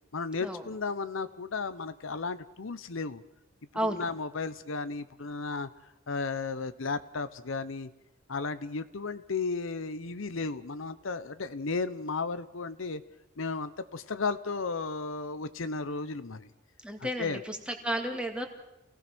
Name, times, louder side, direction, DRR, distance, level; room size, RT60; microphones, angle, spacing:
voice 1, 0.1-3.2 3.8-5.7 6.1-7.9 8.3-13.0 13.4-16.5 17.0-17.4, left 4 dB, 80° left, 12 dB, 0.8 m, -34 dB
voice 2, 3.7-4.1 16.8-18.5, equal, 5° right, 3 dB, 2.1 m, -32 dB
27.0 x 18.0 x 6.1 m, 0.91 s
head